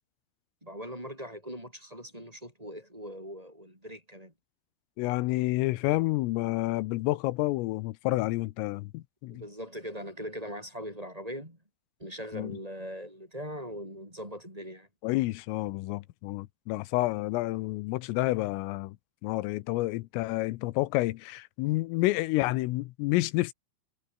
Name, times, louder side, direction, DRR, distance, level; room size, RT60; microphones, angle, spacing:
voice 1, 0.6-4.3 9.3-11.6 12.0-14.9, equal, 5° right, 7.4 m, -40 dB
voice 2, 5.0-9.4 12.3-12.5 15.0-19.0 19.2-23.5, left 19 dB, 85° left, 3.5 m, -29 dB
omnidirectional pair, 5.8 m